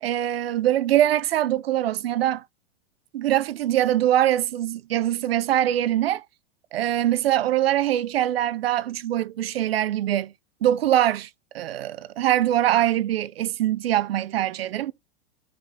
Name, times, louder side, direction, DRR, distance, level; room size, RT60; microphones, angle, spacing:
voice 1, 0.0-2.4 3.1-6.2 6.7-10.3 10.6-11.3 11.5-14.9, right 12 dB, 75° right, 0.7 m, -23 dB
11.0 x 4.0 x 3.9 m
hypercardioid pair, 110°, 30 cm